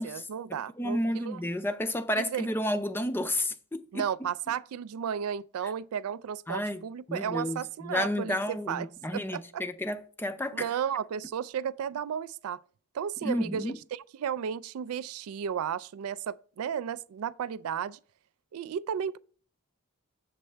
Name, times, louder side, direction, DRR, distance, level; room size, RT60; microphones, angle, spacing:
voice 1, 0.0-1.4 2.2-2.5 3.9-9.6 10.5-12.6 12.9-18.0 18.5-19.2, right 8 dB, 85° right, 0.3 m, -34 dB
voice 2, 0.8-4.0 6.5-6.8 7.1-10.7 13.2-13.8, left 1 dB, 10° left, 0.4 m, -31 dB
7.6 x 7.2 x 3.3 m
head